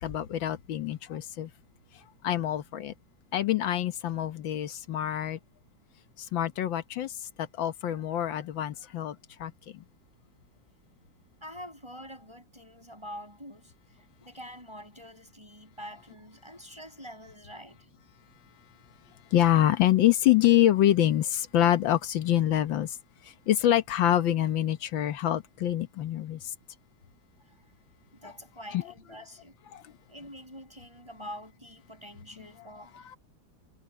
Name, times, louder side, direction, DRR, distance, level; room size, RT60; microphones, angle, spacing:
voice 1, 0.0-1.5 2.2-2.9 3.3-5.4 6.3-7.1 7.6-9.2 9.4-9.8 19.3-23.0 23.5-26.4 28.7-28.8 29.7-29.8, left 12 dB, 75° left, 1.8 m, -25 dB
voice 2, 11.4-13.7 14.2-17.8 28.1-29.5 30.1-33.2, equal, 15° right, 6.8 m, -45 dB
omnidirectional pair, 2.1 m